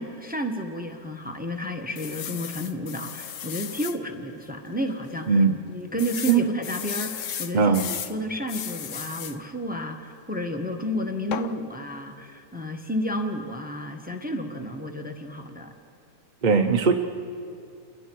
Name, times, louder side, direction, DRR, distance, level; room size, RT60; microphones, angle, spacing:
voice 1, 0.0-5.4 5.7-15.7, equal, 5° right, 5 dB, 1.1 m, -31 dB
sound 1, 2.0-4.0 4.5-4.6 4.9-5.0 6.0-8.1 8.5-9.4 11.3-11.5, left 9 dB, 60° left, 1.0 m, -35 dB
voice 2, 5.3-5.6 6.3-6.4 7.5-7.9 16.4-16.9, right 5 dB, 40° right, 3 dB, 0.8 m, -19 dB
29.0 x 21.0 x 4.7 m, 2.6 s
omnidirectional pair, 1.6 m